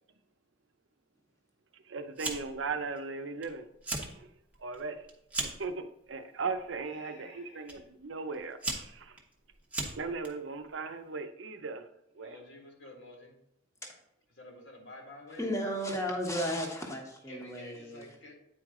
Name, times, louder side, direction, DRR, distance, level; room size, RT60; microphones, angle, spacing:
voice 1, 1.9-3.6 4.6-5.0 5.6-9.1 9.9-11.8 12.2-12.4, right 4 dB, 75° right, 8 dB, 0.6 m, -37 dB
Fire, 2.2-2.7 3.0-3.5 3.7-4.1 4.5-5.7 6.5-6.8 7.7-7.8 8.3-10.3, right 2 dB, 5° right, 0.9 m, -36 dB
voice 2, 6.8-7.9 12.2-13.4 14.3-15.5 17.3-18.3, left 2 dB, 75° left, 0 dB, 1.8 m, -50 dB
voice 3, 15.4-18.0, equal, 15° left, 1 dB, 1.1 m, -34 dB
8.8 x 4.7 x 3.7 m, 0.80 s
head